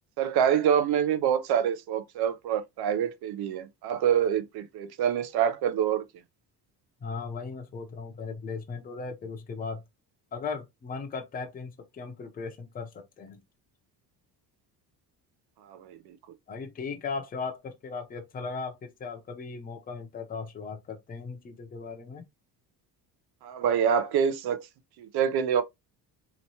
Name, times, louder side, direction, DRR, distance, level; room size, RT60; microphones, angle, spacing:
voice 1, 0.2-6.0 15.6-16.2 23.4-24.7 25.0-25.6, right 8 dB, 65° right, 0.7 m, -26 dB
voice 2, 7.0-9.8 10.3-13.4 16.5-22.3, left 4 dB, 20° left, 0.6 m, -37 dB
4.3 x 3.1 x 2.7 m
cardioid pair, 180°, 41 cm